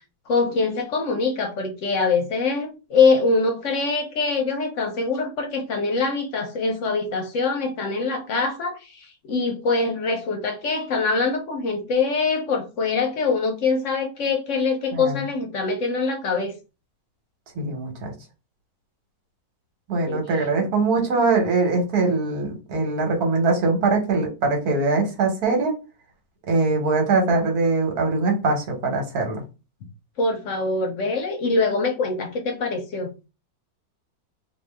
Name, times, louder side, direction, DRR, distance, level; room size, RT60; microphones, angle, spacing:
voice 1, 0.3-16.5 20.1-20.2 30.2-33.1, left 4 dB, 65° left, 0.9 m, -24 dB
voice 2, 17.6-18.1 19.9-25.7 26.5-29.4, right 3 dB, 75° right, 1.5 m, -22 dB
2.6 x 2.6 x 3.3 m
omnidirectional pair, 1.6 m